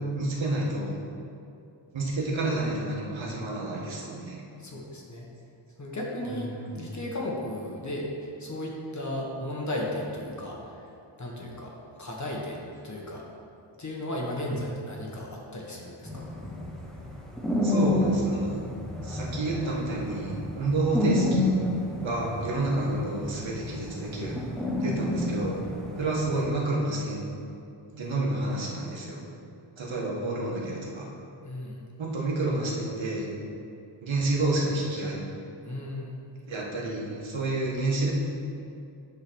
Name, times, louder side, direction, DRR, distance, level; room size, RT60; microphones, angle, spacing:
voice 1, 0.1-0.9 1.9-4.4 6.2-6.8 14.4-14.6 17.6-18.6 19.0-21.5 22.0-24.3 24.8-25.6 26.0-27.3 27.9-29.2 29.8-31.1 32.0-33.3 34.0-35.2 36.5-38.1, right 2 dB, 65° right, -3 dB, 1.6 m, -29 dB
voice 2, 4.6-5.3 5.8-6.5 6.7-10.8 11.2-11.7 12.0-13.2 13.8-16.3 28.1-28.2 31.4-31.8 35.6-36.1, left 1 dB, 35° left, -2 dB, 1.4 m, -35 dB
sound 1, 16.1-26.5, left 1 dB, ahead, 0.9 m, -30 dB
8.8 x 3.9 x 6.2 m, 2.6 s
wide cardioid pair, 115°, 48 cm